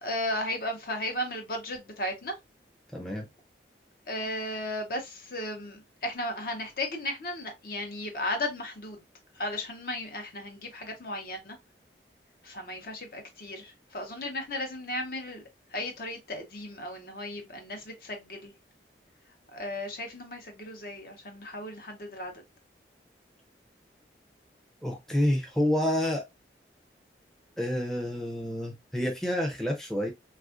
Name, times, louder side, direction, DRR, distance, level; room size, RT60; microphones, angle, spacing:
voice 1, 0.0-2.4 4.1-9.0 9.3-11.6 12.4-15.4 15.7-18.5 19.5-22.3, left 1 dB, 55° left, 0.7 m, -35 dB
voice 2, 2.9-3.3 24.8-26.2 27.6-30.1, left 1 dB, ahead, 0.5 m, -28 dB
3.3 x 2.4 x 2.4 m
head